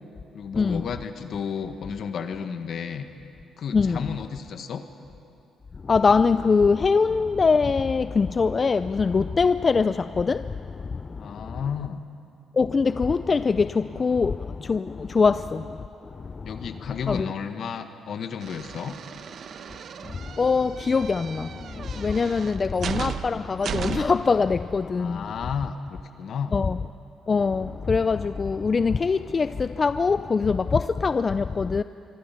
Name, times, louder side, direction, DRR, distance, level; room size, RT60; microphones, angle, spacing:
voice 1, 0.3-3.0 3.6-4.8 11.1-12.0 15.0-15.1 16.4-19.0 24.9-26.6, left 6 dB, 60° left, 1.5 m, -33 dB
voice 2, 5.9-10.4 12.6-13.7 14.0-14.3 14.7-14.8 15.2-15.3 17.1-17.3 20.4-21.3 22.0-25.2 26.5-26.8 27.3-29.5 29.8-31.8, left 4 dB, 35° left, 0.4 m, -22 dB
sound 1, 18.4-24.3, right 7 dB, 60° right, 1.0 m, -35 dB
25.0 x 25.0 x 5.9 m
cardioid pair, 90°, 0 cm